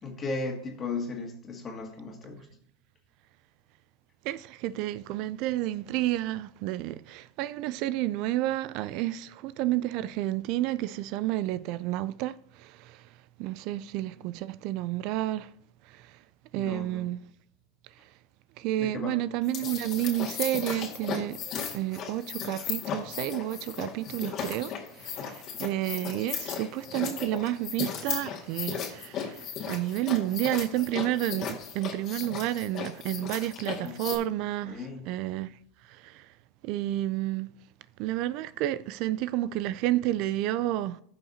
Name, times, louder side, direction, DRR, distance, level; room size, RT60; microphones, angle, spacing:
voice 1, 0.0-2.5 16.5-17.1 18.8-19.2 33.8-34.0 34.6-35.1, left 3 dB, 30° left, 2.1 m, -36 dB
voice 2, 4.3-12.3 12.6-12.7 13.4-15.5 16.5-17.2 18.6-21.4 21.7-24.7 25.0-29.4 29.7-35.5 36.0-36.2 36.6-37.5 38.0-41.0, right 14 dB, 60° right, 0.3 m, -30 dB
sound 1, 19.4-34.2, left 7 dB, 45° left, 1.9 m, -36 dB
15.0 x 5.8 x 2.8 m
supercardioid pair, 115°, 0 cm